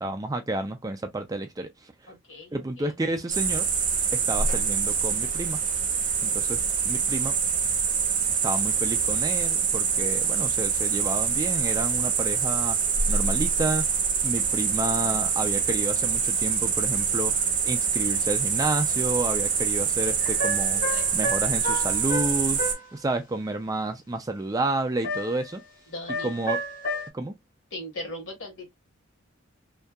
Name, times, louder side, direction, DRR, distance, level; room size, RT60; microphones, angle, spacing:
voice 1, 0.0-1.9 2.5-3.7 4.1-5.6 6.2-6.6 6.8-7.4 8.4-12.8 13.1-13.8 14.2-20.8 21.1-22.6 22.9-25.6 26.2-26.6 27.1-27.3, right 2 dB, 15° right, 0.3 m, -30 dB
voice 2, 2.1-2.9 20.9-21.4 25.9-26.3 27.7-28.7, left 1 dB, 65° left, 1.3 m, -39 dB
sound 1, 3.3-22.7, right 6 dB, 40° right, 0.9 m, -25 dB
sound 2, 20.2-22.9 25.0-25.5 26.1-27.1, equal, 40° left, 0.7 m, -31 dB
2.6 x 2.3 x 2.2 m
head